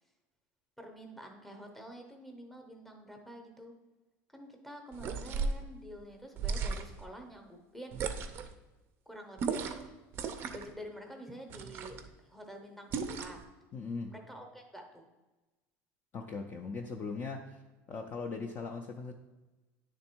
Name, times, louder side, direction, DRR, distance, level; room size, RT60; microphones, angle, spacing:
voice 1, 0.8-3.7 4.3-8.5 9.1-10.0 10.5-13.4 14.1-15.1, equal, 5° left, 3 dB, 0.7 m, -48 dB
sound 1, 4.9-5.6 6.4-7.0 7.9-8.5 9.4-9.9 10.1-10.7 11.5-12.1 12.9-13.4, right 5 dB, 35° right, 0.4 m, -35 dB
voice 2, 13.7-14.1 16.1-17.6 17.9-19.1, left 4 dB, 25° left, 2 dB, 0.4 m, -39 dB
9.4 x 3.5 x 4.4 m, 1.1 s
cardioid pair, 170°, 7 cm